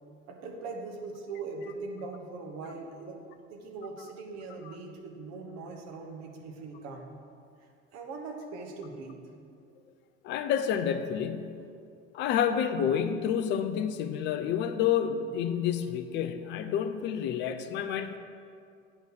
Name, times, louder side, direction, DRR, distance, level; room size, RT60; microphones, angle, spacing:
voice 1, 0.3-3.2 3.5-7.1 7.9-9.3, right 3 dB, 40° right, 2 dB, 1.2 m, -41 dB
voice 2, 10.2-11.6 12.1-18.2, left 8 dB, 30° left, 9 dB, 0.5 m, -29 dB
8.7 x 3.9 x 6.3 m, 2.4 s
figure-of-eight pair, 75°, 39 cm